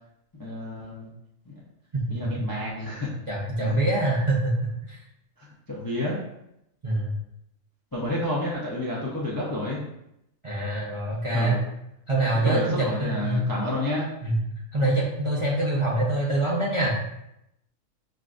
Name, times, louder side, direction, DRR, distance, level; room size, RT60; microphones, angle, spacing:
voice 1, 0.4-1.1 1.5-1.6 2.1-3.1 3.6-3.8 5.4-6.2 7.9-9.8 11.3-11.6 12.4-14.1, left 1 dB, 30° left, -5 dB, 0.4 m, -30 dB
voice 2, 1.9-2.3 3.3-5.0 6.8-7.1 10.4-11.6 12.1-13.5 14.2-14.4 14.7-17.0, right 2 dB, 35° right, -5 dB, 0.5 m, -25 dB
6.2 x 2.4 x 2.5 m, 0.82 s
omnidirectional pair, 1.4 m